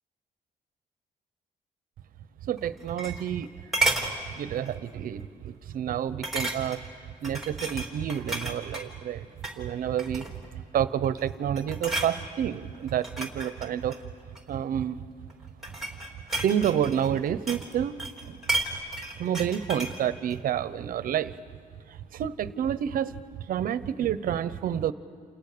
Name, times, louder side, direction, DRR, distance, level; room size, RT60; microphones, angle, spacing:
voice 1, 2.4-3.5 4.3-6.8 7.2-9.3 9.6-10.3 10.7-14.0 14.5-15.0 16.4-18.4 19.2-21.3 21.9-23.1 23.5-24.9, right 9 dB, 65° right, 14 dB, 1.0 m, -29 dB
sound 1, 2.6-3.4 3.7-4.1 4.7-4.9 5.2-5.3 6.2-6.9 7.2-8.9 9.3-9.6 10.0-10.5 11.0-11.3 11.6-12.1 12.9-14.5 15.3-17.7 18.0-20.0 20.3-20.4, right 2 dB, ahead, 3.4 m, -32 dB
29.0 x 28.5 x 6.8 m, 2.3 s
cardioid pair, 140°, 15 cm